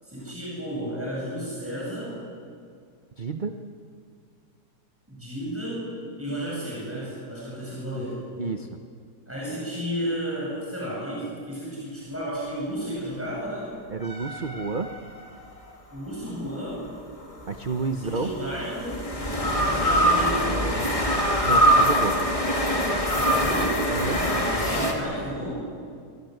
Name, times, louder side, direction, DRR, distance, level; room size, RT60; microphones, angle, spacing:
voice 1, 0.0-2.2 5.1-5.9 6.2-8.2 9.3-13.8 15.9-16.8 18.0-21.1 23.1-25.6, equal, 10° right, -6 dB, 7.9 m, -32 dB
voice 2, 3.2-3.6 8.4-8.7 13.9-14.9 17.5-18.3 21.4-22.2 23.9-24.2, right 4 dB, 35° right, 6 dB, 1.0 m, -30 dB
sound 1, 14.0-15.5 17.4-24.9, equal, 20° left, 2.9 m, -24 dB
26.0 x 24.0 x 8.0 m, 2.2 s
omnidirectional pair, 1.7 m